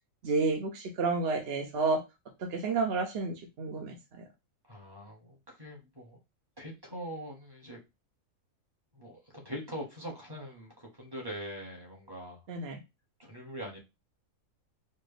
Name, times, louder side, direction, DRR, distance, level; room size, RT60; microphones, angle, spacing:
voice 1, 0.2-2.0 2.5-3.9 12.5-12.8, right 4 dB, 55° right, 2 dB, 0.8 m, -30 dB
voice 2, 4.6-6.2 6.6-7.8 8.9-12.4 13.2-13.8, equal, 15° right, -2 dB, 1.3 m, -42 dB
4.4 x 2.5 x 3.3 m, 0.24 s
omnidirectional pair, 1.4 m